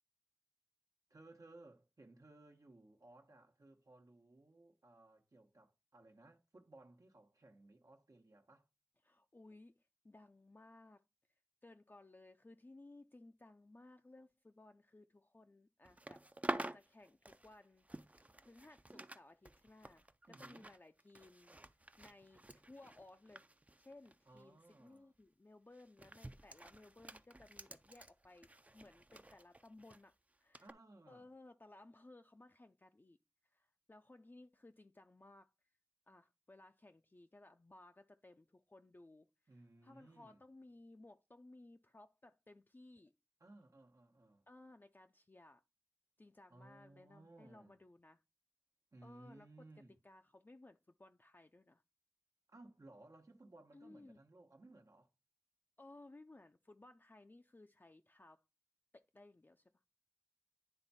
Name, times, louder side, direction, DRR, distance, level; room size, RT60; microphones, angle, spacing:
voice 1, 1.1-8.7 20.3-20.7 24.3-25.1 30.6-31.2 39.5-40.4 43.4-44.5 46.5-47.8 48.9-50.0 52.5-55.1, right 2 dB, 75° right, 1.1 m, -61 dB
voice 2, 9.0-11.0 11.6-16.3 16.6-17.9 18.4-21.5 22.0-23.4 23.8-30.2 30.4-30.7 31.1-33.2 33.4-35.5 36.1-39.5 39.8-43.1 44.5-45.6 46.2-48.2 49.0-49.5 50.0-51.8 53.7-54.2 55.8-58.4 58.9-59.7, left 2 dB, 35° left, 0.4 m, -60 dB
sound 1, 15.8-19.2 19.4-24.4 24.7-25.0 25.7-30.0 30.5-30.7, right 1 dB, 25° right, 0.4 m, -49 dB
9.8 x 3.5 x 4.1 m
wide cardioid pair, 45°, 6 cm